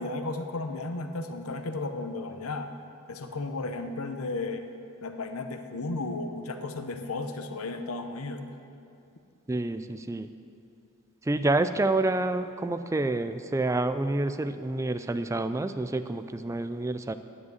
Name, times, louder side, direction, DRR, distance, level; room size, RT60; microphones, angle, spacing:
voice 1, 0.0-2.7 3.1-4.6 5.0-8.5, left 2 dB, 75° left, 7 dB, 0.8 m, -34 dB
voice 2, 9.5-10.3 11.2-17.1, right 2 dB, 15° right, 10 dB, 0.3 m, -28 dB
9.6 x 8.0 x 7.9 m, 2.6 s
head